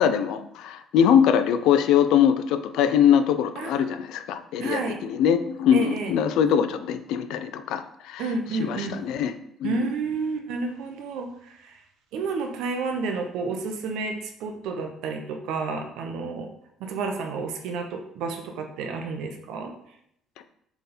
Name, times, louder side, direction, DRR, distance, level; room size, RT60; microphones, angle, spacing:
voice 1, 0.0-8.3 8.6-9.3 9.6-9.7, left 8 dB, 80° left, 11 dB, 0.5 m, -22 dB
voice 2, 3.6-4.0 4.6-5.0 5.7-6.1 8.2-9.0 9.6-11.8 12.1-16.5 16.8-19.7, right 4 dB, 80° right, 4 dB, 1.1 m, -30 dB
7.0 x 3.7 x 4.4 m, 0.74 s
cardioid pair, 125°, 0 cm